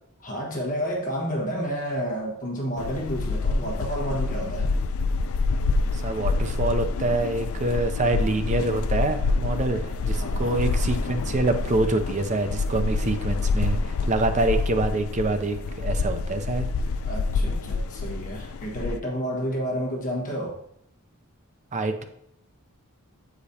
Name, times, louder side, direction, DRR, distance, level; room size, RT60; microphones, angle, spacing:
voice 1, 0.2-4.7 10.2-10.6 17.0-20.6, equal, 35° left, -2 dB, 1.3 m, -30 dB
sound 1, 2.8-19.0, left 3 dB, 65° left, 0.3 m, -27 dB
voice 2, 5.9-16.7 21.7-22.0, right 2 dB, 35° right, 7 dB, 0.5 m, -26 dB
8.0 x 5.0 x 2.8 m, 0.74 s
head